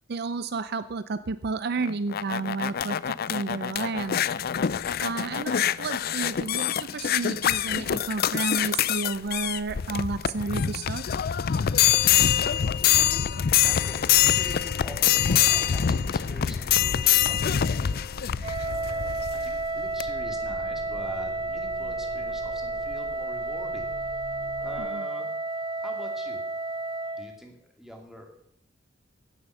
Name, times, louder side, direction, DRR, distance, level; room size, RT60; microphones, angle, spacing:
voice 1, 0.1-4.3 5.0-11.1 24.8-25.0, right 4 dB, 55° right, 13 dB, 0.5 m, -31 dB
sound 1, 1.8-19.4 20.0-20.1, left 10 dB, 50° left, 0.4 m, -25 dB
voice 2, 11.8-18.3 18.6-23.9 24.2-25.3 25.8-26.4 27.2-28.3, equal, ahead, 2 dB, 2.6 m, -44 dB
sound 2, 13.0-24.8, equal, 80° left, 5.3 m, -44 dB
Wind instrument woodwind instrument, 18.4-27.3, right 2 dB, 30° right, 1.7 m, -31 dB
16.0 x 7.7 x 6.9 m, 0.70 s
head